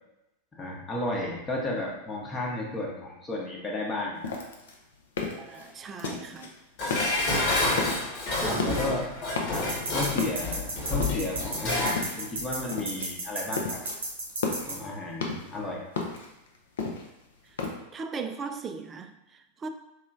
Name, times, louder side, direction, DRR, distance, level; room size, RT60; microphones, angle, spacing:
voice 1, 0.5-4.3 8.4-9.0 9.5-13.8 14.7-15.8, left 2 dB, 20° left, -2 dB, 0.9 m, -33 dB
sound 1, 4.2-6.5 6.9-7.4 7.7-8.1 8.5-9.0 9.3-9.8 10.2-11.5 11.9-12.4 12.7-13.1 13.4-14.0 14.3-15.6 16.0-17.7, left 4 dB, 60° left, 0.6 m, -33 dB
voice 2, 5.4-6.5 8.4-9.1 17.5-17.6 17.9-19.7, right 5 dB, 25° right, 7 dB, 0.3 m, -38 dB
Dishes pots and pans, 6.8-12.1 12.4-12.5, left 2 dB, 45° left, 1.2 m, -29 dB
sound 2, 9.5-14.8, right 2 dB, 70° right, 0.8 m, -34 dB
4.5 x 2.9 x 2.5 m, 0.91 s
figure-of-eight pair, 90°, 0 cm